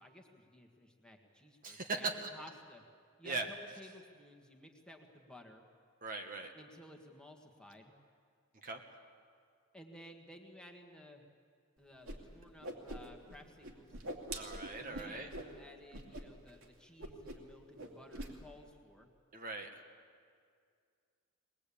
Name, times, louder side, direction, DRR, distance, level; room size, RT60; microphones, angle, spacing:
voice 1, 0.0-2.8 3.2-5.6 6.5-7.9 9.7-11.2 11.8-14.0 14.8-19.1, left 1 dB, 5° left, 2 dB, 1.7 m, -55 dB
voice 2, 1.6-2.3 3.2-3.5 6.0-6.5 8.6-8.8 14.3-15.3 19.3-19.7, right 3 dB, 40° right, 4 dB, 1.5 m, -39 dB
Whoosh swoosh swish, 12.0-12.2 12.4-13.4 13.6-15.5 15.9-16.2 16.5-16.6 17.0-17.5 17.8-18.3, right 1 dB, 65° right, 2.7 m, -44 dB
22.5 x 20.0 x 8.6 m, 2.1 s
head